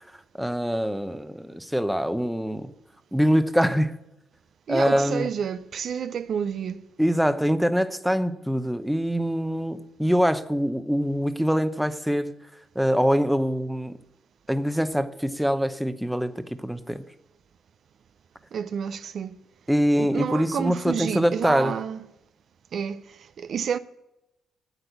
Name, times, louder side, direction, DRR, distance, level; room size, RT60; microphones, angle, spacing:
voice 1, 0.4-2.7 3.1-3.9 4.7-5.3 7.0-12.3 12.7-14.0 14.5-17.0 19.7-21.7, equal, ahead, 0.8 m, -24 dB
voice 2, 4.7-6.9 18.5-19.4 19.9-22.0 22.7-23.8, right 7 dB, 60° right, 0.5 m, -30 dB
8.8 x 8.1 x 8.1 m
cardioid pair, 90°, 0 cm